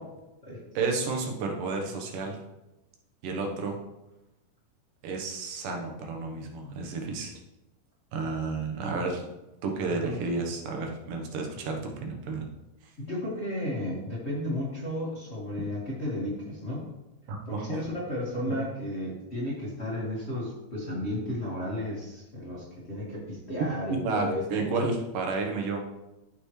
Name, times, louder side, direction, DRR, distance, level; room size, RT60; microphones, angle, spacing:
voice 1, 0.7-2.4 3.2-3.8 5.0-7.3 8.1-9.2 9.6-12.5 17.3-17.8 23.9-26.0, right 3 dB, 85° right, 2 dB, 2.9 m, -31 dB
voice 2, 8.8-9.2 9.9-10.2 13.0-16.9 17.5-24.7, left 1 dB, 25° left, -6 dB, 1.7 m, -33 dB
14.0 x 5.7 x 3.2 m, 0.97 s
omnidirectional pair, 3.7 m